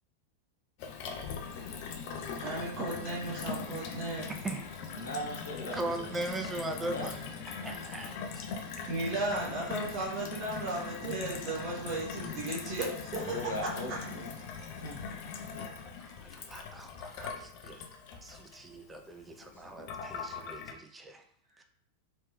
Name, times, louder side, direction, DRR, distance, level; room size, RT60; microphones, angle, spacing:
Gurgling / Water tap faucet / Sink (filling or washing), 0.8-20.7, left 5 dB, 45° left, 0.4 m, -41 dB
voice 1, 2.4-4.3 8.9-13.5, right 2 dB, 35° right, -6 dB, 1.1 m, -35 dB
voice 2, 4.3-5.0 5.7-8.5 8.8-8.9 16.0-17.8 18.2-21.2 21.6-21.7, right 2 dB, 15° right, 5 dB, 0.4 m, -40 dB
voice 3, 4.9-6.1 6.7-7.1 13.1-14.3 14.8-15.0, left 1 dB, 70° left, -3 dB, 1.0 m, -39 dB
3.2 x 2.9 x 2.3 m, 0.69 s
figure-of-eight pair, 90°, 0 cm